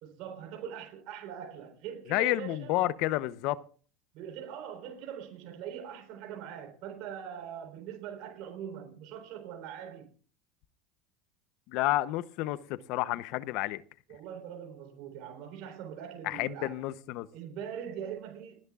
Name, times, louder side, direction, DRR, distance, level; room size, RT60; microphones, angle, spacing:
voice 1, 0.0-2.7 4.1-10.1 14.1-16.8 17.3-18.6, right 8 dB, 60° right, 3.8 m, -42 dB
voice 2, 2.1-3.6 11.7-13.8 16.2-17.3, left 16 dB, 65° left, 0.8 m, -30 dB
29.5 x 11.0 x 2.4 m
supercardioid pair, 125°, 0 cm